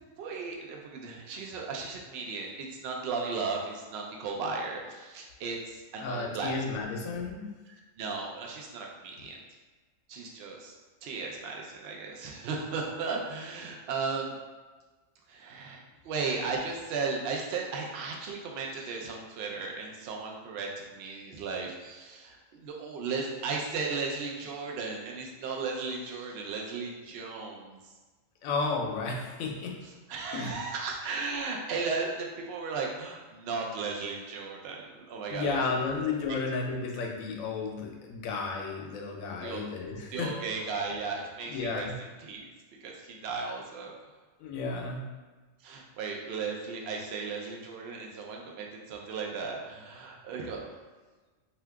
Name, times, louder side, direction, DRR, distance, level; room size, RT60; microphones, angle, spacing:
voice 1, 0.2-6.5 7.7-9.4 10.1-10.8 11.0-14.4 15.3-27.8 30.1-36.0 36.3-36.4 39.4-39.6 40.1-42.5 42.8-43.9 45.6-50.8, right 4 dB, 65° right, 0 dB, 0.7 m, -36 dB
voice 2, 6.0-7.5 28.4-29.7 30.3-30.6 35.3-40.3 41.5-42.0 44.4-45.1, left 4 dB, 90° left, 0 dB, 1.0 m, -33 dB
2.7 x 2.2 x 3.4 m, 1.3 s
omnidirectional pair, 1.4 m